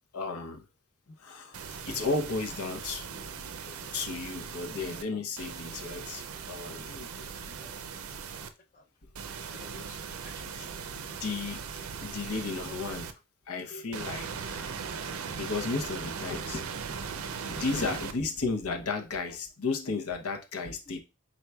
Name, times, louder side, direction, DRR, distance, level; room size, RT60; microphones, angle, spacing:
voice 1, 0.1-0.6 1.2-1.6 1.9-3.5 3.9-6.9 10.4-11.6 12.0-13.1 13.5-14.7 15.4-21.0, left 4 dB, 85° left, 0.8 m, -34 dB
sound 1, 1.5-5.0 5.4-8.5 9.1-13.1 13.9-18.1, right 6 dB, 75° right, 0.5 m, -39 dB
voice 2, 6.9-7.7 9.5-10.0 10.2-10.4 13.7-14.0, left 2 dB, 40° left, 0.5 m, -49 dB
4.5 x 3.9 x 2.2 m
head